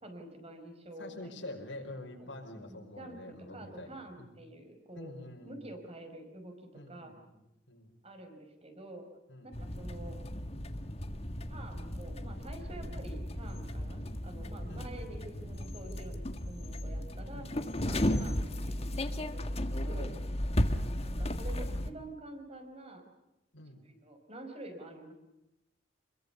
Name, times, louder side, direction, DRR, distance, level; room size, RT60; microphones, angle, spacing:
voice 1, 0.0-1.7 2.2-5.1 5.4-7.2 8.0-9.1 9.4-10.2 11.5-17.5 17.8-20.2 21.0-23.1 23.8-25.1, right 1 dB, 35° right, 6 dB, 5.0 m, -48 dB
voice 2, 1.0-4.3 5.0-5.7 6.7-7.9 9.3-9.5 14.7-14.9 17.3-17.5 19.7-20.6 23.5-23.8, left 1 dB, 85° left, 1 dB, 5.1 m, -47 dB
sound 1, 9.5-21.9, left 1 dB, 35° left, 1.6 m, -35 dB
27.5 x 22.0 x 6.9 m, 0.92 s
head